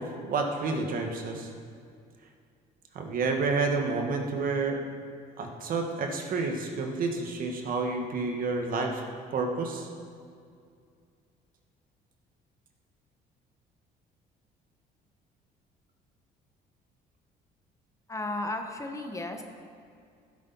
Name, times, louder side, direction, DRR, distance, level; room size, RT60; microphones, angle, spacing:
voice 1, 0.0-1.5 2.9-4.8 5.4-9.0 9.3-9.9, right 3 dB, 55° right, 3 dB, 1.5 m, -29 dB
voice 2, 18.1-19.4, left 2 dB, 20° left, 4 dB, 1.0 m, -34 dB
15.0 x 8.4 x 4.1 m, 2.3 s
cardioid pair, 110°, 17 cm